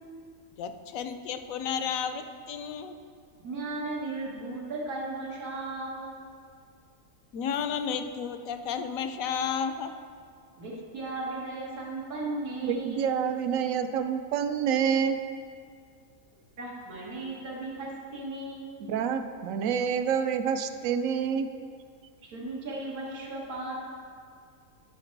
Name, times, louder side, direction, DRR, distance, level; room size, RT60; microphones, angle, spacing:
voice 1, 0.6-3.0 7.3-9.9, left 7 dB, 70° left, 8 dB, 1.0 m, -32 dB
voice 2, 3.4-6.1 10.6-13.1 16.6-18.7 22.3-23.8, right 2 dB, 90° right, -6 dB, 2.1 m, -36 dB
voice 3, 12.6-15.2 18.8-21.5, right 7 dB, 70° right, 9 dB, 0.9 m, -27 dB
12.0 x 5.8 x 4.6 m, 2.2 s
omnidirectional pair, 1.5 m